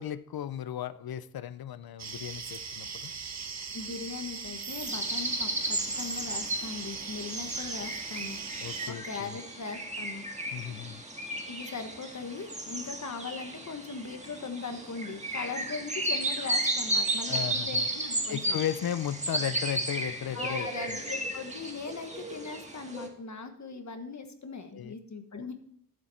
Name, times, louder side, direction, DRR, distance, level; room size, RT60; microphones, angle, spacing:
voice 1, 0.0-3.1 8.6-9.3 10.5-11.0 17.3-17.9 18.3-21.0 24.7-24.9 25.4-25.5, left 10 dB, 85° left, 15 dB, 0.6 m, -35 dB
sound 1, 2.0-8.9, right 5 dB, 50° right, 1.0 m, -40 dB
voice 2, 3.7-10.3 11.5-18.6 20.3-25.5, left 4 dB, 50° left, 7 dB, 1.4 m, -39 dB
sound 2, 4.8-23.1, right 1 dB, 20° right, 1.6 m, -34 dB
12.5 x 7.5 x 4.3 m, 0.70 s
wide cardioid pair, 95°, 35 cm